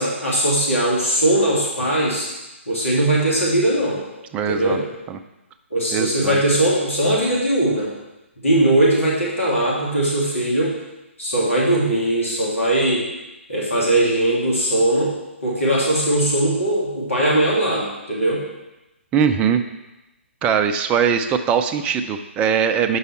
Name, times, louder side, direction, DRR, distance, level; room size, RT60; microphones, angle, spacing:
voice 1, 0.0-2.3 2.7-4.0 4.5-4.8 5.7-7.9 8.4-10.8 11.2-13.0 13.5-15.2 15.4-18.4, right 1 dB, 80° left, -5 dB, 2.5 m, -20 dB
voice 2, 4.3-4.8 5.1-5.2 5.9-6.4 19.1-19.6 20.4-23.0, right 7 dB, 15° right, 7 dB, 0.4 m, -20 dB
8.0 x 5.5 x 4.2 m, 0.99 s
figure-of-eight pair, 135°, 7 cm